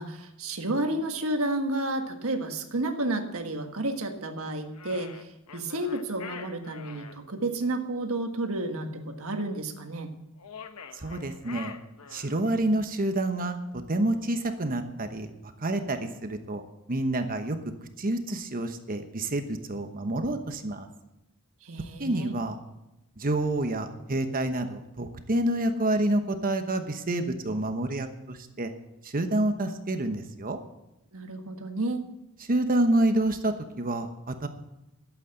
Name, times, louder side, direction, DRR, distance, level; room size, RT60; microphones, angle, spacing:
voice 1, 0.0-10.1 21.6-22.4 31.1-32.0, right 2 dB, 65° right, 5 dB, 1.6 m, -31 dB
sound 1, 4.7-7.2 10.4-12.5, left 6 dB, 80° left, 1.0 m, -45 dB
voice 2, 10.9-11.7 12.1-16.6 16.9-17.6 18.0-20.9 22.0-22.6 23.2-28.7 29.0-30.6 32.5-34.5, right 1 dB, 40° right, 7 dB, 1.0 m, -28 dB
12.0 x 8.4 x 7.8 m, 0.94 s
head